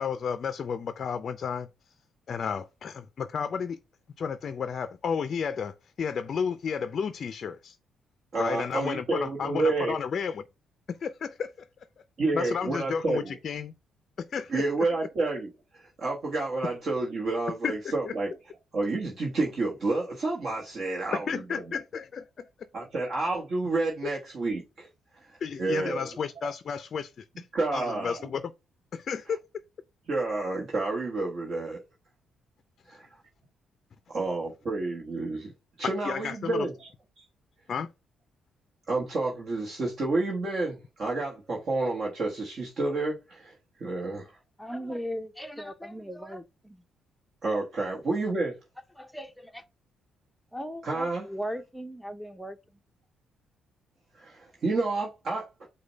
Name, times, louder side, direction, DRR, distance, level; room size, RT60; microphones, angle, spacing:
voice 1, 0.0-1.7 2.3-3.8 4.2-7.8 8.4-10.4 10.9-11.5 12.3-13.7 14.2-14.9 17.6-18.1 21.1-22.4 25.4-27.5 27.7-28.5 28.9-29.4 32.9-33.0 36.0-36.7 37.7-37.9, left 6 dB, 50° left, 0.4 m, -32 dB
voice 2, 8.3-10.0 12.2-13.3 14.5-18.3 18.7-21.8 22.7-24.9 25.6-26.1 27.5-28.3 30.1-31.8 32.9-33.1 34.1-35.5 35.8-36.9 37.2-37.3 38.9-43.5 43.8-44.3 47.4-48.6 50.8-51.3 54.2-55.7, right 3 dB, 50° right, 1.1 m, -30 dB
voice 3, 44.6-46.8 48.9-49.6 50.5-52.6, equal, ahead, 0.6 m, -38 dB
4.9 x 2.2 x 4.0 m
cardioid pair, 90°, 0 cm